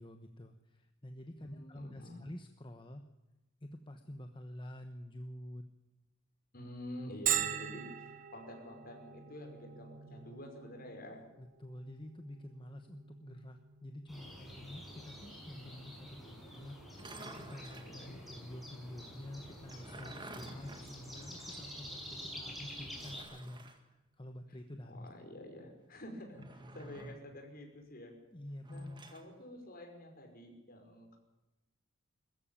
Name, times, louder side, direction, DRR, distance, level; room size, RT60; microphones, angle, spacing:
voice 1, 0.0-3.0 3.6-5.6 10.1-10.4 11.4-25.1 26.9-27.1 28.3-29.1, left 1 dB, 25° left, 6 dB, 1.1 m, -49 dB
voice 2, 1.4-2.2 6.5-11.2 17.7-18.2 20.2-20.6 24.8-28.1 28.7-31.2, left 1 dB, 45° left, 2 dB, 5.6 m, -49 dB
Bell, 7.3-22.7, right 10 dB, 40° right, 1.2 m, -44 dB
sound 1, 14.1-23.2, equal, ahead, 6.3 m, -48 dB
sound 2, 16.9-18.0 19.5-21.7 22.0-22.1 22.9-23.8 26.3-27.3 28.6-29.3, right 1 dB, 25° right, 1.9 m, -51 dB
21.0 x 14.5 x 8.9 m, 0.99 s
head